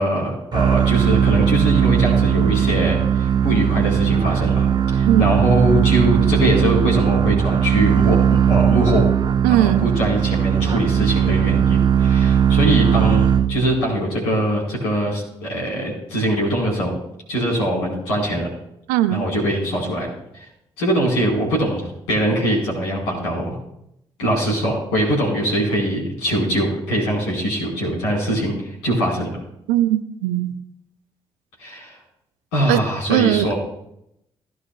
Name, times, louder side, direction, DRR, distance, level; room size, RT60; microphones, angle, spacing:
voice 1, 0.0-9.1 9.5-16.9 17.3-18.5 19.1-20.5 20.8-23.6 24.2-29.3 31.6-32.0 32.5-33.5, right 1 dB, 75° left, -3 dB, 4.6 m, -22 dB
sound 1, 0.5-13.9, right 8 dB, 30° right, 0.4 m, -18 dB
voice 2, 9.4-9.9 18.9-19.2 29.7-30.5 32.7-32.8 33.1-33.5, right 14 dB, 70° right, 13 dB, 0.6 m, -19 dB
17.0 x 11.0 x 2.3 m, 0.78 s
figure-of-eight pair, 40°, 14 cm